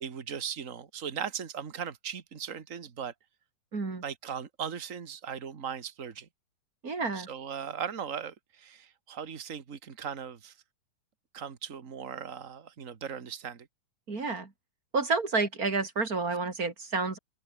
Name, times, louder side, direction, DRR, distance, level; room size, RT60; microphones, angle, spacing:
voice 1, 0.0-3.1 4.0-6.3 7.1-10.5 11.3-13.7, right 7 dB, 80° right, 0.7 m, -38 dB
voice 2, 3.7-4.0 6.8-7.3 14.1-14.5 14.9-17.2, right 4 dB, 25° right, 3.5 m, -30 dB
omnidirectional pair, 4.1 m